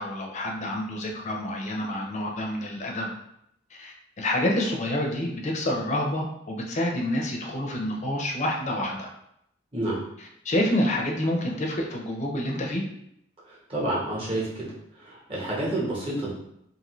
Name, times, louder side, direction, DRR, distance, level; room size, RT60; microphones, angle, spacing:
voice 1, 0.0-3.1 3.8-9.1 10.2-12.8, left 1 dB, 40° left, 1 dB, 0.5 m, -28 dB
voice 2, 13.5-14.7 15.0-16.3, right 1 dB, 30° right, -5 dB, 1.0 m, -29 dB
2.6 x 2.6 x 3.0 m, 0.76 s
head